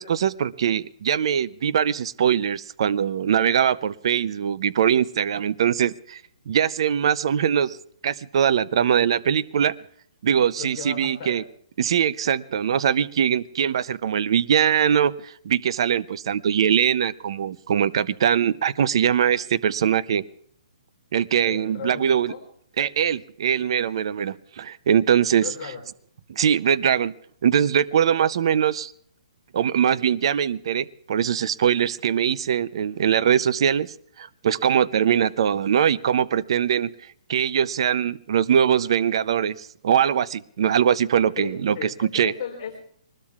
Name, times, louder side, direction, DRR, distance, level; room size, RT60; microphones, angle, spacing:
voice 1, 0.0-6.2 6.5-7.8 8.0-9.7 10.2-11.4 11.8-20.2 21.1-22.3 22.8-25.5 26.3-27.1 27.4-28.9 29.5-36.9 37.3-42.3, right 8 dB, 45° right, 17 dB, 0.5 m, -22 dB
voice 2, 10.6-11.4 21.4-22.4 25.4-25.8 40.6-40.7 41.4-42.8, left 7 dB, 30° left, -1 dB, 3.6 m, -36 dB
24.5 x 20.5 x 2.4 m, 0.62 s
hypercardioid pair, 170°, 4 cm